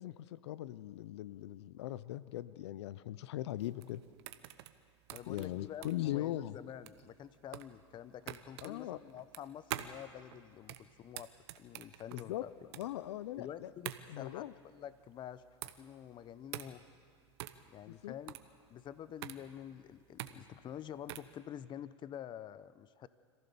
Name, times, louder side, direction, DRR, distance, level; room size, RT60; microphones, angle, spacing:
voice 1, 0.0-4.0 5.3-6.6 8.6-9.0 12.1-12.5 12.7-13.7 14.1-14.5 17.9-18.2, left 14 dB, 75° left, 17 dB, 0.7 m, -40 dB
sound 1, 3.6-21.4, right 14 dB, 70° right, 1.1 m, -47 dB
voice 2, 5.1-11.3 11.6-12.5 13.4-15.4 15.8-16.8 17.7-18.4 18.7-23.1, left 10 dB, 30° left, 16 dB, 0.8 m, -48 dB
26.0 x 15.0 x 7.0 m, 2.1 s
hypercardioid pair, 105°, 15 cm